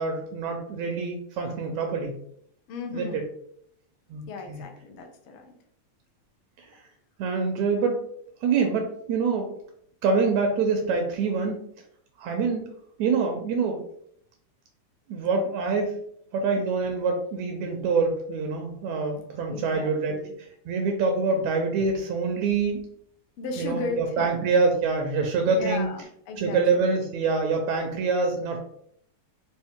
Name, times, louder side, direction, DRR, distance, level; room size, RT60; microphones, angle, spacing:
voice 1, 0.0-2.2 2.9-3.1 4.1-4.6 6.6-6.8 7.2-8.0 8.4-9.5 10.0-11.6 12.2-12.7 13.0-13.8 15.1-15.9 16.3-20.2 20.7-22.8 23.6-25.9 26.4-28.6, right 4 dB, 80° right, 3 dB, 1.8 m, -25 dB
voice 2, 2.7-3.3 4.3-5.5 19.5-20.3 23.4-24.4 25.4-26.9, left 4 dB, 85° left, 2 dB, 1.2 m, -36 dB
5.3 x 2.4 x 3.5 m, 0.68 s
omnidirectional pair, 3.4 m